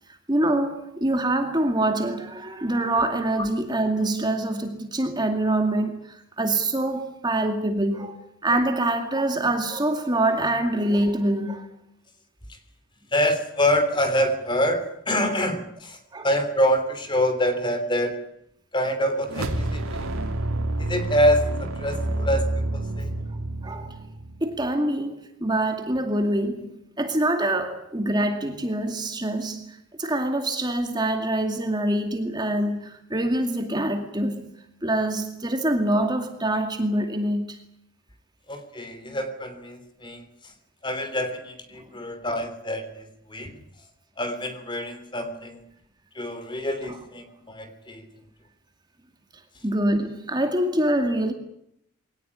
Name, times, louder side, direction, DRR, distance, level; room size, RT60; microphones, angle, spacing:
voice 1, 0.1-11.7 15.3-15.4 16.1-16.3 23.6-24.0 24.4-34.5 34.8-37.6 41.8-41.9 46.8-47.0 49.6-51.3, right 1 dB, 20° right, 2.3 m, -25 dB
voice 2, 13.1-16.0 16.2-18.2 18.7-20.1 20.8-23.1 38.5-40.2 40.8-43.5 44.2-45.6 46.1-48.1, equal, 20° left, 3.2 m, -26 dB
sound 1, 19.3-24.6, right 1 dB, 85° right, 3.0 m, -28 dB
22.5 x 18.5 x 9.9 m
head